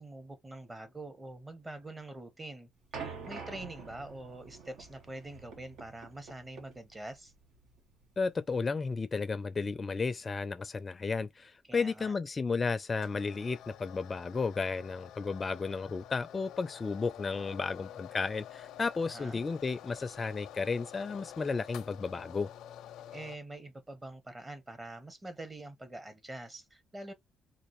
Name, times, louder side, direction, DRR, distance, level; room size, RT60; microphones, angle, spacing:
voice 1, 0.0-2.7 3.0-7.3 11.6-12.1 19.0-19.4 23.1-27.1, right 2 dB, 20° right, 1.0 m, -45 dB
sound 1, 2.9-8.3, right 5 dB, 75° right, 1.4 m, -47 dB
voice 2, 8.2-22.5, left 4 dB, 35° left, 0.4 m, -33 dB
sound 2, 12.9-23.4, left 10 dB, 85° left, 0.5 m, -49 dB
3.9 x 2.5 x 3.1 m
cardioid pair, 90°, 0 cm